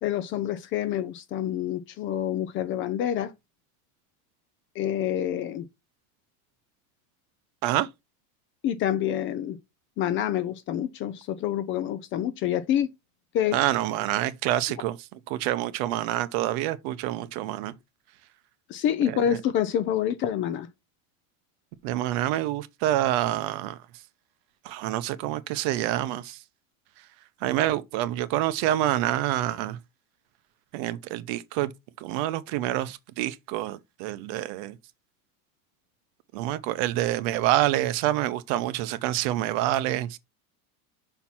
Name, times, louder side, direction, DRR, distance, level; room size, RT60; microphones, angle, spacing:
voice 1, 0.0-3.3 4.8-5.7 8.6-9.6 10.0-12.9 13.3-13.6 18.7-20.7, left 10 dB, 30° left, 0.5 m, -27 dB
voice 2, 13.5-15.0 15.3-17.7 19.0-19.4 21.8-23.8 24.6-26.4 27.4-29.8 30.7-31.7 32.0-34.8 36.3-40.2, right 14 dB, 50° right, 0.8 m, -27 dB
5.8 x 4.5 x 5.5 m
supercardioid pair, 155°, 44 cm